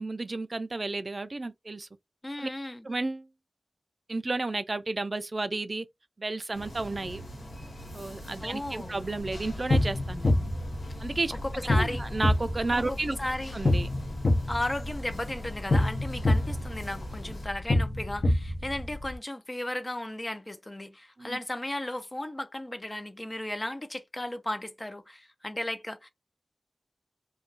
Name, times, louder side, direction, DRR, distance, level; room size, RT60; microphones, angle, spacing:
voice 1, 0.0-1.9 2.4-2.5 2.8-3.3 4.1-5.9 6.2-7.2 7.9-10.5 11.0-11.4 11.8-13.2 13.5-13.9 21.2-21.4, right 2 dB, 45° right, 0.3 m, -32 dB
voice 2, 2.2-2.9 8.4-9.0 11.4-12.0 12.9-13.5 14.5-26.1, left 1 dB, 25° left, 0.4 m, -35 dB
sound 1, 6.5-17.5, equal, 90° left, 1.2 m, -43 dB
sound 2, 9.2-19.1, left 1 dB, 60° left, 0.7 m, -28 dB
2.3 x 2.2 x 3.7 m
wide cardioid pair, 55°, 0 cm